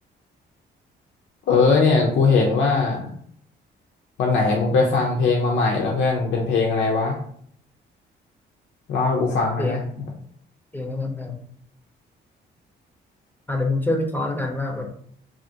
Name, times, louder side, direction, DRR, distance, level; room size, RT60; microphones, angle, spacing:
voice 1, 1.5-3.1 4.2-7.2 8.9-9.8, left 4 dB, 70° left, 0 dB, 0.5 m, -20 dB
voice 2, 9.6-10.0 10.7-11.4 13.5-14.9, left 2 dB, 10° left, 3 dB, 0.5 m, -26 dB
2.8 x 2.4 x 2.6 m, 0.62 s
cardioid pair, 90°, 20 cm